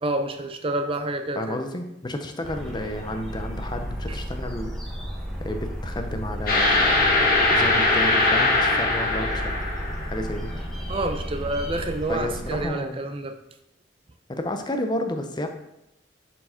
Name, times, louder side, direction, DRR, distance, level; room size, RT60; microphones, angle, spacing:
voice 1, 0.0-1.6 4.1-4.2 10.9-13.4, right 2 dB, 30° right, 7 dB, 0.5 m, -28 dB
voice 2, 1.4-4.7 5.4-9.5 10.1-10.5 12.1-13.0 14.3-15.5, left 1 dB, 25° left, 5 dB, 0.6 m, -31 dB
sound 1, 2.4-12.7, equal, ahead, 1.0 m, -34 dB
sound 2, 6.5-10.3, left 2 dB, 55° left, 1.6 m, -21 dB
6.9 x 4.5 x 4.3 m, 0.86 s
head